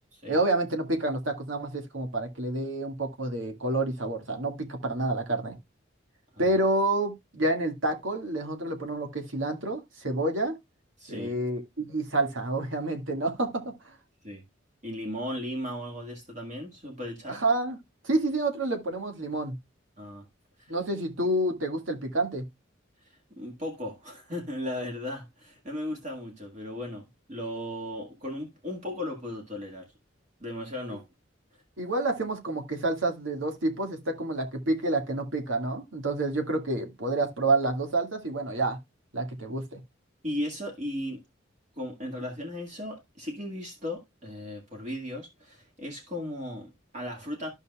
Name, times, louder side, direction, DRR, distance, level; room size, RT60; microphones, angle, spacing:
voice 1, 0.2-5.6 6.4-10.6 11.1-13.9 17.3-17.8 18.0-19.6 20.7-22.4 31.8-38.8 39.1-39.8, right 2 dB, 80° right, 1.9 m, -28 dB
voice 2, 11.0-11.3 14.2-14.4 14.8-17.4 20.0-20.2 20.6-20.7 23.1-29.9 30.4-31.0 40.2-41.2 41.8-47.5, left 1 dB, 40° right, 1.8 m, -36 dB
13.5 x 5.4 x 2.3 m
head